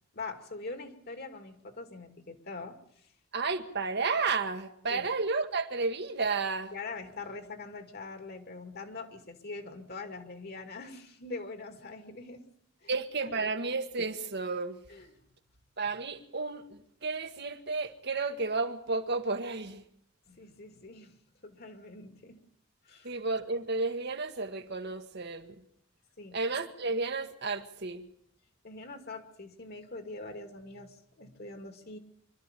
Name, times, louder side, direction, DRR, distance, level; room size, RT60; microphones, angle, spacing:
voice 1, 0.1-2.8 4.9-5.1 6.7-12.4 12.8-12.9 14.9-15.1 20.3-21.2 21.4-22.4 22.9-23.1 26.2-26.4 28.6-32.0, left 3 dB, 50° left, 2.5 m, -43 dB
voice 2, 3.3-6.7 12.9-14.8 15.8-19.8 23.0-25.6 26.3-28.1, right 4 dB, 55° right, 1.5 m, -32 dB
25.0 x 13.0 x 9.1 m
head